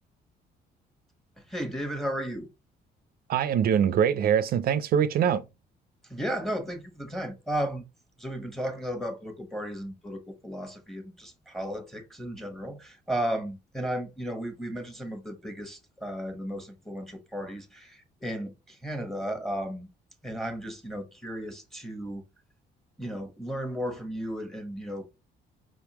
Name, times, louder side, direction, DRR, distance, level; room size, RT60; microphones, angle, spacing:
voice 1, 1.4-2.5 6.0-7.8 8.2-19.9 20.2-22.2 23.0-25.3, equal, ahead, 1.1 m, -34 dB
voice 2, 3.3-5.4, right 8 dB, 55° right, 0.4 m, -23 dB
5.1 x 3.5 x 2.9 m
cardioid pair, 160°, 18 cm